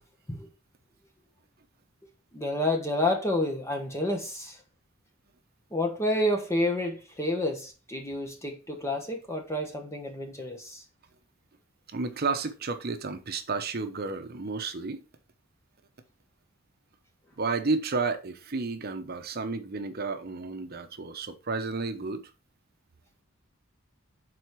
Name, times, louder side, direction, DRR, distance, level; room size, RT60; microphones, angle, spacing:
voice 1, 2.3-4.6 5.7-10.8, left 1 dB, 15° left, 1.2 m, -29 dB
voice 2, 11.9-15.0 17.4-22.2, right 4 dB, 50° right, 0.8 m, -31 dB
6.3 x 4.1 x 4.6 m
head